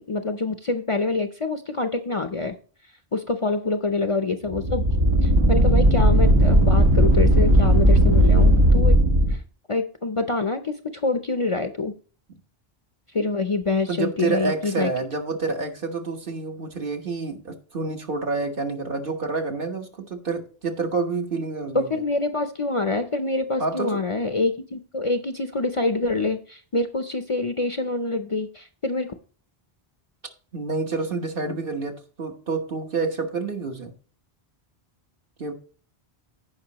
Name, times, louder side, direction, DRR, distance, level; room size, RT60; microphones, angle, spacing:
voice 1, 0.1-2.5 3.1-4.8 5.2-9.0 9.3-9.4 9.7-11.9 13.1-14.9 21.7-29.1, left 3 dB, 35° left, 0.6 m, -26 dB
sound 1, 4.5-9.3, equal, 75° right, 1.9 m, -16 dB
voice 2, 5.4-5.8 13.9-22.0 23.6-24.0 30.5-33.9 35.4-35.5, right 4 dB, 60° right, 1.4 m, -28 dB
15.5 x 5.4 x 2.9 m
omnidirectional pair, 1.1 m